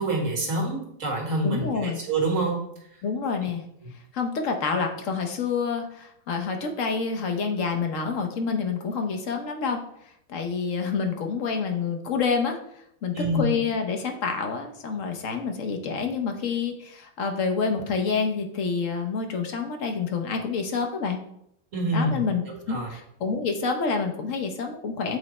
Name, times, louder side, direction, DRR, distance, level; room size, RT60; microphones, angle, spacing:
voice 1, 0.0-2.7 13.1-13.4 21.7-22.2 22.7-22.9, right 2 dB, 65° right, -1 dB, 1.8 m, -26 dB
voice 2, 1.4-2.0 3.0-3.6 4.1-9.8 10.3-12.6 13.0-21.2 21.9-25.2, left 5 dB, 70° left, 4 dB, 1.2 m, -28 dB
7.9 x 3.2 x 4.1 m, 0.74 s
omnidirectional pair, 1.4 m